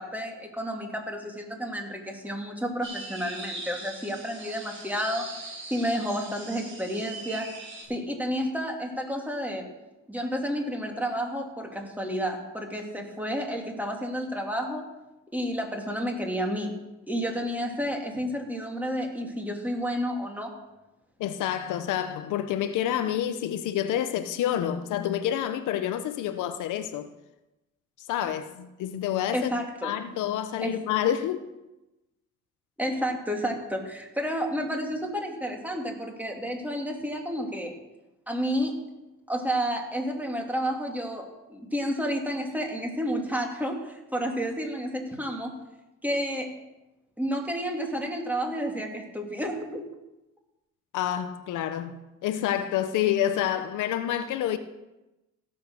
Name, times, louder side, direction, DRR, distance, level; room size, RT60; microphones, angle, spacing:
voice 1, 0.0-7.5 7.9-9.7 10.1-14.8 15.3-16.8 17.1-20.5 29.3-29.9 30.6-30.7 32.8-37.7 38.3-38.8 39.3-45.5 46.0-46.6 47.2-49.8, equal, 5° right, 2.9 m, -31 dB
sound 1, 2.8-7.8, right 2 dB, 40° right, 6.2 m, -41 dB
voice 2, 21.2-27.1 28.1-29.5 29.8-31.4 50.9-52.0 52.2-54.6, left 11 dB, 90° left, 0.9 m, -28 dB
15.5 x 7.5 x 6.5 m
cardioid pair, 90°, 30 cm